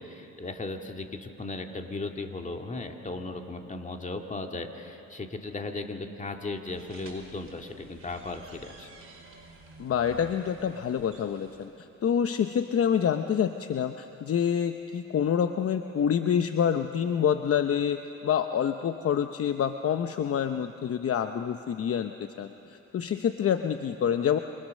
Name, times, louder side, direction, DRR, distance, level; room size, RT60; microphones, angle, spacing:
voice 1, 0.0-8.9, left 3 dB, 25° left, 3 dB, 2.2 m, -36 dB
sound 1, 6.6-11.7, right 4 dB, 45° right, 5.4 m, -52 dB
voice 2, 9.8-22.1 22.4-24.4, left 8 dB, 50° left, 8 dB, 0.9 m, -27 dB
27.0 x 27.0 x 6.5 m, 3.0 s
cardioid pair, 90°, 30 cm